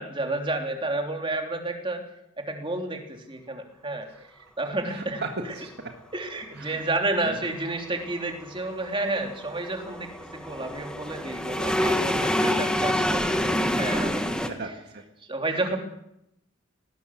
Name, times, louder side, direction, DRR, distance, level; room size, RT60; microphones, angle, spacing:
voice 1, 0.0-2.0 2.4-4.1 4.6-5.2 6.1-13.4 13.8-14.5 15.3-15.8, right 2 dB, 25° right, 3 dB, 3.2 m, -30 dB
voice 2, 4.9-5.9 6.5-6.8 7.2-7.4 14.5-15.0 15.5-15.8, right 3 dB, 55° right, 4 dB, 1.9 m, -37 dB
sound 1, 7.6-14.5, left 1 dB, 5° left, 1.6 m, -27 dB
19.5 x 18.0 x 7.8 m, 0.80 s
head